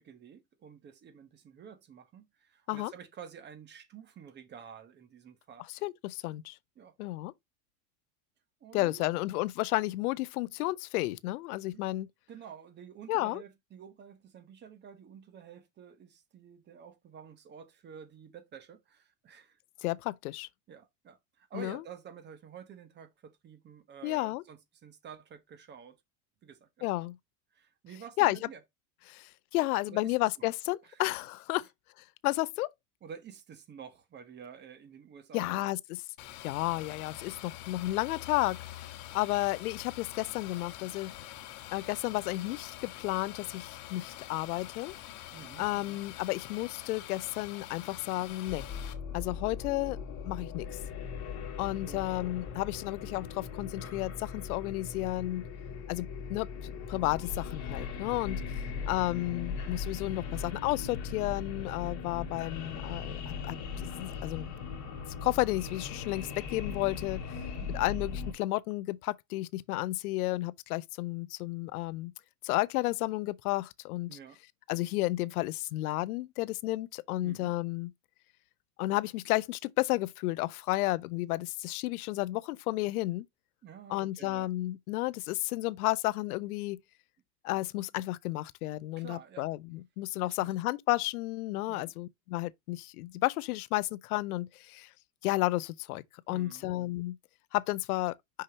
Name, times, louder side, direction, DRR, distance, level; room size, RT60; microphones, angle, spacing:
voice 1, 0.0-5.7 6.8-6.9 8.6-9.1 11.7-11.8 12.3-19.6 20.7-26.0 26.4-27.1 27.5-28.6 29.9-30.1 30.8-31.0 33.0-35.6 45.3-46.0 51.8-52.0 67.3-68.0 74.1-74.4 77.2-77.5 83.6-84.5 89.0-89.5 90.3-90.5 91.7-91.9 96.3-96.7, right 7 dB, 25° right, 1.0 m, -50 dB
voice 2, 5.8-6.6 7.0-7.3 8.7-12.1 13.1-13.4 19.8-20.5 21.5-21.8 24.0-24.4 26.8-27.2 28.2-28.4 29.1-31.7 32.2-32.7 35.3-36.0 36.4-38.6 39.1-41.1 41.7-44.9 45.6-48.7 49.1-50.0 50.2-50.7 51.6-55.4 55.9-64.5 65.2-67.2 67.7-72.1 72.4-74.2 74.7-77.9 78.8-83.2 83.9-86.8 87.4-94.9 95.2-97.2 97.5-98.2, left 18 dB, 85° left, 0.6 m, -32 dB
sound 1, 36.2-48.9, left 14 dB, 55° left, 1.2 m, -46 dB
sound 2, 48.5-68.3, left 6 dB, 40° left, 2.5 m, -39 dB
6.4 x 5.7 x 2.8 m
supercardioid pair, 140°, 44 cm